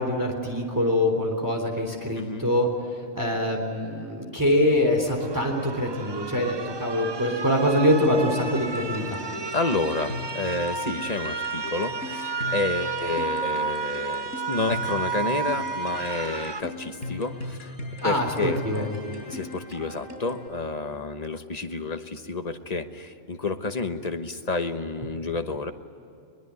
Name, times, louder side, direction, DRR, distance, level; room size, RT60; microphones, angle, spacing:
voice 1, 0.0-2.7 3.1-9.2 18.0-18.8, left 1 dB, 15° right, 1 dB, 3.6 m, -24 dB
voice 2, 2.2-2.5 9.5-17.7 18.0-18.9 19.3-25.7, left 3 dB, 30° left, 7 dB, 1.2 m, -30 dB
sound 1, 5.0-16.6, right 5 dB, 30° right, 0.4 m, -32 dB
sound 2, 8.2-20.5, left 2 dB, 60° left, 7.0 m, -39 dB
23.0 x 21.5 x 9.6 m, 2.7 s
omnidirectional pair, 1.4 m